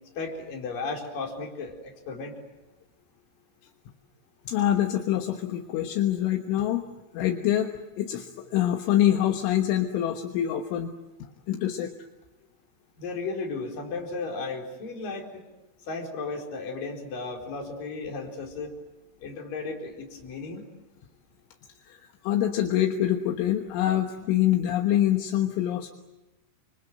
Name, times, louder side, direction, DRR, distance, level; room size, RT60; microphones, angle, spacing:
voice 1, 0.2-2.4 13.0-15.4 15.9-18.7 19.2-20.6, left 3 dB, 45° left, 1 dB, 5.7 m, -35 dB
voice 2, 4.5-6.8 7.1-10.9 11.2-11.9 21.9-22.0 22.2-25.9, left 12 dB, 75° left, 5 dB, 3.7 m, -25 dB
29.5 x 25.5 x 7.8 m, 1.1 s
omnidirectional pair, 5.7 m